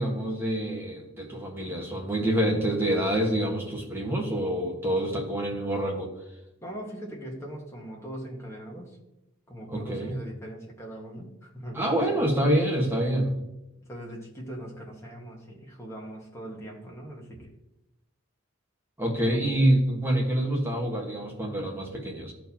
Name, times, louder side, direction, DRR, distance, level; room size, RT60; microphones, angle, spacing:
voice 1, 0.0-6.1 9.7-10.2 11.7-13.4 19.0-22.3, right 1 dB, 10° right, -1 dB, 1.3 m, -26 dB
voice 2, 6.6-9.0 9.5-12.2 13.9-17.5 19.2-19.4, right 1 dB, 15° left, -2 dB, 1.4 m, -40 dB
13.5 x 4.5 x 2.8 m, 0.91 s
head